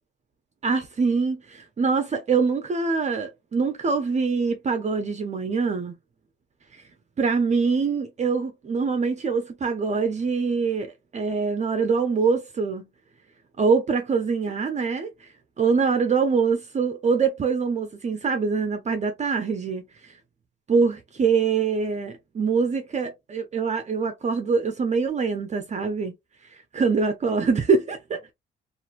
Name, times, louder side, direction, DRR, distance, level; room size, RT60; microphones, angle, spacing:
voice 1, 0.6-6.0 6.7-6.8 7.2-12.9 13.6-15.3 15.6-20.1 20.7-26.1 26.5-28.2, right 5 dB, 35° right, 0.5 m, -24 dB
2.9 x 2.5 x 2.4 m
cardioid pair, 90°, 20 cm